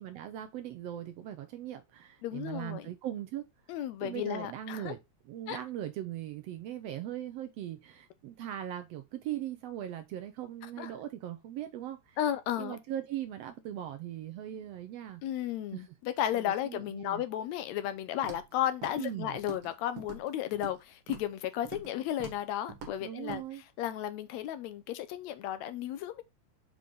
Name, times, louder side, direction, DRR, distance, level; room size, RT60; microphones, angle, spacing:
voice 1, 0.0-5.0 5.2-12.2 12.6-15.2 15.7-16.0 16.3-17.2 19.0-19.4 23.0-23.6, right 12 dB, 75° right, 1.5 m, -40 dB
voice 2, 2.2-2.9 3.7-4.9 5.5-5.6 10.8-10.9 12.2-12.8 15.2-23.4 23.8-26.2, left 11 dB, 75° left, 1.8 m, -34 dB
Walk footsteps, 18.2-18.5 18.8-19.1 19.4-19.7 20.0-20.8 21.1-21.3 21.6-21.9 22.2-22.4 22.7-23.0 23.3-23.4, right 6 dB, 60° right, 2.6 m, -44 dB
6.9 x 4.8 x 3.8 m
omnidirectional pair, 3.4 m